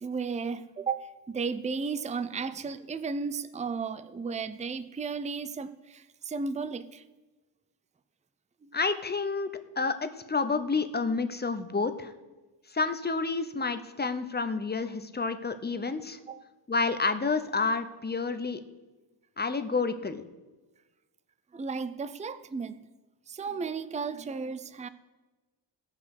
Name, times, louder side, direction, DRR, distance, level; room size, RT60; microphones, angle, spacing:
voice 1, 0.0-7.0 8.6-8.7 16.3-16.4 21.5-22.8 23.3-24.9, right 5 dB, 15° right, 0.4 m, -34 dB
voice 2, 8.7-12.1 12.7-16.2 16.7-18.6 19.4-20.2, left 4 dB, 20° left, 0.7 m, -29 dB
16.0 x 6.0 x 6.5 m
wide cardioid pair, 115°, 46 cm